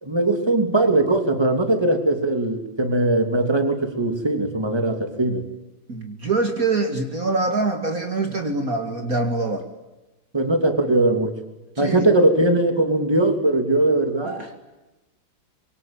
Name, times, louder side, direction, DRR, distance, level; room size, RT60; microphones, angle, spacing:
voice 1, 0.0-5.4 10.3-11.3 11.8-14.3, right 2 dB, 10° right, 7 dB, 3.0 m, -20 dB
voice 2, 5.9-9.7 11.8-12.1 14.2-14.5, right 3 dB, 45° right, 6 dB, 2.7 m, -24 dB
26.0 x 24.0 x 9.0 m, 1.0 s
omnidirectional pair, 2.1 m